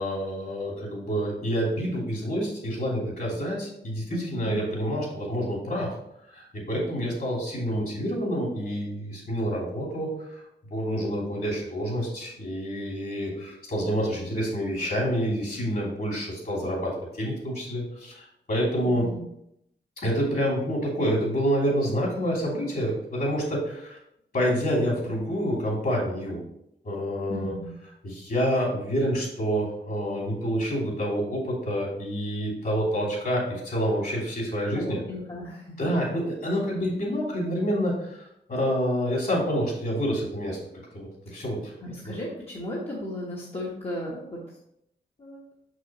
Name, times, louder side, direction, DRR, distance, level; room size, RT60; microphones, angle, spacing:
voice 1, 0.0-5.9 6.3-10.4 10.7-19.1 20.0-24.0 24.3-26.4 26.8-27.5 28.0-35.0 35.8-38.2 38.5-40.6 40.9-41.7 42.0-42.1, equal, 50° left, -3 dB, 2.8 m, -28 dB
voice 2, 4.1-4.6 18.8-19.2 27.3-27.7 34.7-35.8 41.3-41.4 41.8-44.6 45.2-45.4, left 1 dB, 30° left, -6 dB, 1.3 m, -36 dB
6.4 x 6.1 x 3.0 m, 0.76 s
wide cardioid pair, 125°, 19 cm